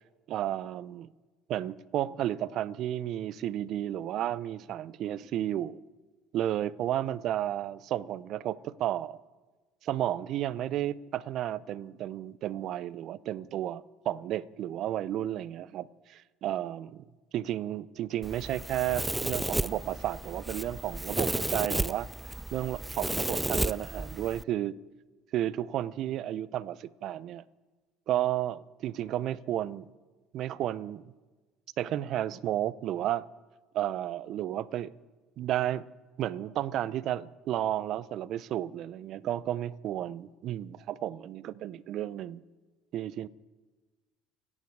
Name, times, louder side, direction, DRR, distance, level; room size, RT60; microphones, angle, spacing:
voice 1, 0.3-1.1 1.5-5.8 6.3-9.2 9.8-17.0 17.3-22.1 22.5-24.8 25.3-27.4 28.1-29.9 30.3-31.0 31.8-33.3 33.7-34.9 35.4-35.9 36.2-42.4 42.9-43.3, right 12 dB, 60° right, 0.6 m, -32 dB
Domestic sounds home sounds, 18.2-24.4, right 2 dB, 10° right, 0.4 m, -33 dB
28.0 x 9.9 x 4.8 m
hypercardioid pair, 65°, 0 cm